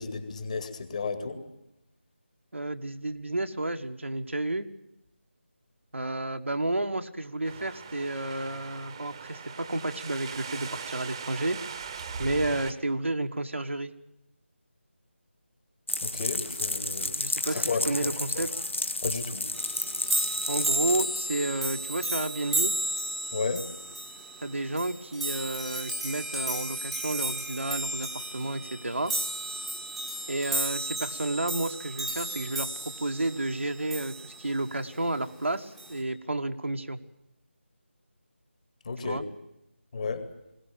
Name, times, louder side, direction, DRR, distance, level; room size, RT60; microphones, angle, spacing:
voice 1, 0.0-1.4 16.0-17.1 17.7-18.1 19.0-19.5 23.3-23.6 38.9-39.2 39.9-40.2, left 4 dB, 35° left, 7 dB, 2.3 m, -32 dB
voice 2, 2.5-4.7 5.9-11.6 12.2-13.9 17.2-18.5 20.5-22.7 24.4-29.1 30.3-32.7 33.0-37.0 39.0-39.2, right 2 dB, 75° right, 6 dB, 1.5 m, -31 dB
sound 1, 7.4-12.7, right 6 dB, 25° right, 1.2 m, -40 dB
sound 2, 15.9-21.0, left 2 dB, 75° left, 1.7 m, -31 dB
sound 3, 19.5-34.6 35.8-36.0, right 1 dB, ahead, 1.3 m, -33 dB
21.5 x 18.0 x 8.7 m, 0.90 s
figure-of-eight pair, 160°, 7 cm